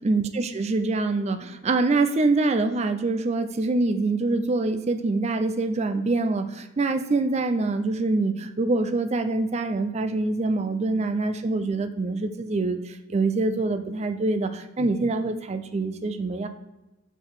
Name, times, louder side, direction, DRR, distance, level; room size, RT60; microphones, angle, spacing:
voice 1, 0.0-16.5, right 3 dB, 35° right, 9 dB, 0.4 m, -25 dB
5.7 x 4.5 x 4.7 m, 0.98 s
head